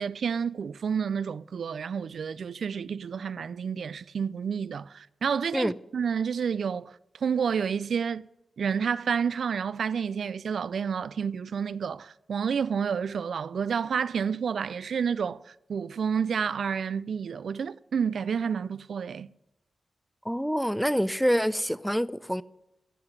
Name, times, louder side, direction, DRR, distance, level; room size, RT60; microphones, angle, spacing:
voice 1, 0.0-6.9 7.2-8.3 8.6-19.3, right 6 dB, 75° right, 0.4 m, -30 dB
voice 2, 20.2-22.4, equal, ahead, 0.5 m, -26 dB
14.5 x 5.7 x 9.4 m
cardioid pair, 80°, 0 cm